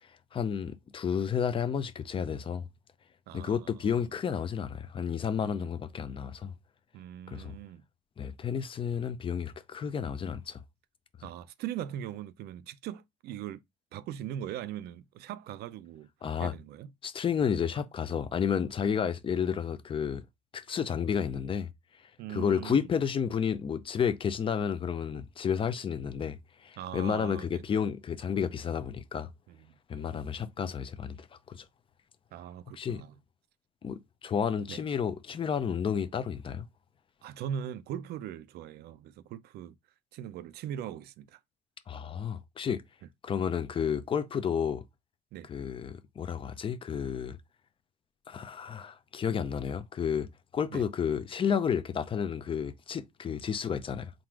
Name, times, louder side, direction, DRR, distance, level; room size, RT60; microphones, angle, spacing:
voice 1, 0.3-2.7 3.3-6.5 7.3-7.5 8.2-10.6 16.2-16.5 17.0-20.2 20.5-21.7 22.3-29.3 29.9-31.6 32.8-33.0 33.8-36.7 41.9-42.8 43.2-44.8 45.5-47.4 48.3-50.3 50.5-54.1, left 7 dB, 30° left, 0.5 m, -31 dB
voice 2, 3.3-3.9 5.4-5.8 6.9-7.8 11.2-13.6 13.9-16.1 16.4-16.9 22.2-22.9 26.8-27.6 29.5-30.3 32.3-33.1 34.7-34.8 37.2-39.7 40.1-41.4 45.3-45.5 50.7-50.8, right 10 dB, 75° right, 0.5 m, -40 dB
3.8 x 2.5 x 4.5 m
cardioid pair, 110°, 17 cm